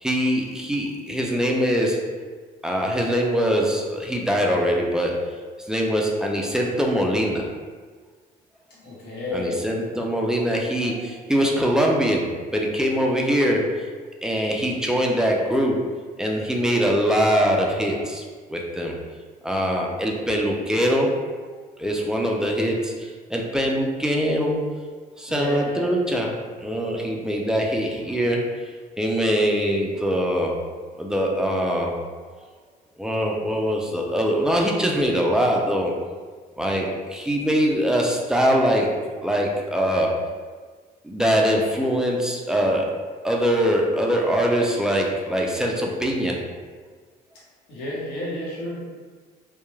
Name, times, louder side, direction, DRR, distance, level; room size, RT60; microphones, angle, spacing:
voice 1, 0.0-2.2 2.6-5.2 5.7-7.5 9.3-15.9 16.2-18.2 18.5-18.9 19.4-21.2 21.8-24.6 25.2-26.3 26.6-28.6 29.0-30.6 31.0-32.0 33.0-36.0 36.6-40.2 41.0-43.0 43.2-46.4, equal, 5° right, -1 dB, 0.3 m, -23 dB
voice 2, 8.7-9.6 25.3-25.9 47.7-48.9, left 1 dB, 80° left, -7 dB, 1.0 m, -31 dB
2.2 x 2.2 x 3.1 m, 1.5 s
cardioid pair, 110°, 17 cm